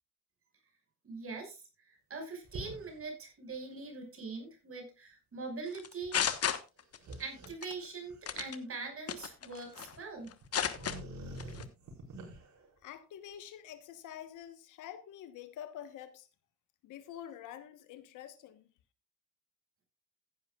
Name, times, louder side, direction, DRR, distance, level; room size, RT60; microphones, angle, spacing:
voice 1, 1.0-1.6 1.9-6.3 7.2-10.3, right 4 dB, 45° right, 6.0 m, -42 dB
sound 1, 2.4-3.0 3.5-3.6 6.0-6.1 7.0-8.9 9.9-10.0 10.4-12.7, right 1 dB, 65° right, 5.4 m, -47 dB
sound 2, 5.7-7.1 7.4-7.7 8.3-8.6 9.1-9.9 10.3-11.0 11.4-11.6, left 8 dB, 50° left, 1.3 m, -33 dB
voice 2, 12.8-16.3 16.8-18.7, left 10 dB, 85° left, 1.3 m, -47 dB
15.0 x 11.0 x 2.4 m
cardioid pair, 90°, 30 cm